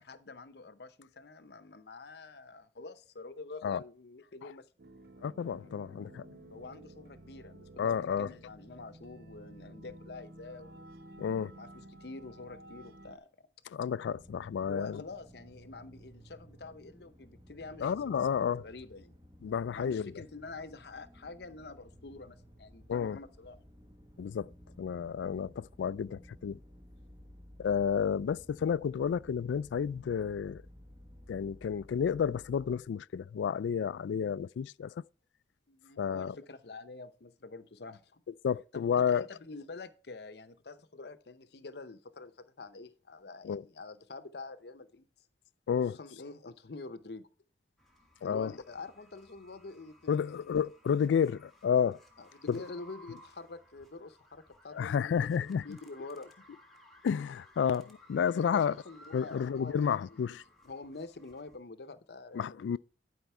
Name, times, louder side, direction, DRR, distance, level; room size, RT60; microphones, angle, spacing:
voice 1, 0.0-4.7 6.5-10.9 11.5-13.3 14.7-17.9 18.2-18.3 18.6-19.1 19.7-23.6 35.7-38.2 38.7-45.1 45.9-47.3 48.2-50.3 52.2-56.4 58.3-60.3 60.6-62.8, left 3 dB, 65° left, 0.7 m, -47 dB
sound 1, 4.8-13.2, right 1 dB, 60° right, 0.8 m, -53 dB
voice 2, 5.2-6.3 7.8-8.3 11.2-11.5 13.7-15.0 17.8-18.6 19.4-20.1 22.9-23.2 24.2-24.5 24.8-26.6 27.6-30.6 31.3-34.9 36.0-36.3 38.4-39.3 43.4-43.6 45.7-46.0 48.2-48.5 50.1-52.0 54.7-55.8 57.0-58.8 59.1-60.4 62.3-62.8, left 7 dB, 90° left, 0.3 m, -31 dB
sound 2, 14.1-32.8, equal, 25° right, 1.1 m, -55 dB
sound 3, 47.8-61.6, equal, ahead, 1.5 m, -60 dB
11.5 x 5.1 x 4.4 m
head